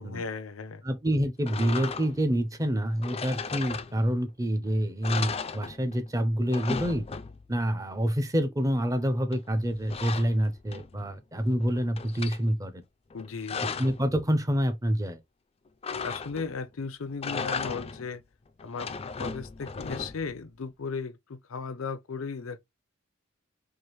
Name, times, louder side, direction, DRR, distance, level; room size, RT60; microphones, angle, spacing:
voice 1, 0.0-0.8 13.1-13.8 16.0-18.2 18.6-22.6, left 5 dB, 80° left, 0.6 m, -36 dB
voice 2, 0.8-7.1 7.5-12.8 13.6-15.2, equal, 15° right, 0.6 m, -27 dB
sound 1, 1.4-2.3 3.0-4.3 4.6-4.7 5.0-6.1 6.3-7.6 9.3-11.1 11.5-12.4 13.1-14.0 15.8-16.6 17.1-18.1 18.6-20.4, left 5 dB, 30° left, 0.4 m, -36 dB
4.7 x 2.5 x 3.0 m
head